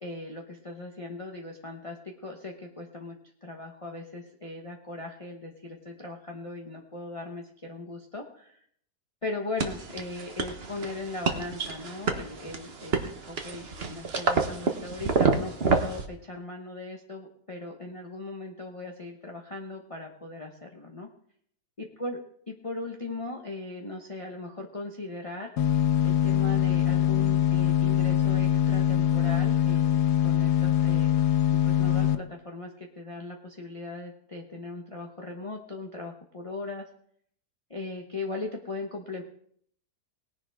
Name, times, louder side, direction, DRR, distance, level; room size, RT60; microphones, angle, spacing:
voice 1, 0.0-3.1 3.4-8.6 9.2-21.1 21.8-22.2 22.5-25.5 26.0-31.1 31.5-36.8 37.7-39.2, left 2 dB, 25° left, 0 dB, 1.1 m, -38 dB
sound 1, 9.6-16.0, right 4 dB, 40° right, 1.3 m, -28 dB
sound 2, 25.6-32.2, left 11 dB, 80° left, 1.3 m, -23 dB
19.5 x 10.5 x 3.6 m, 0.65 s
omnidirectional pair, 1.7 m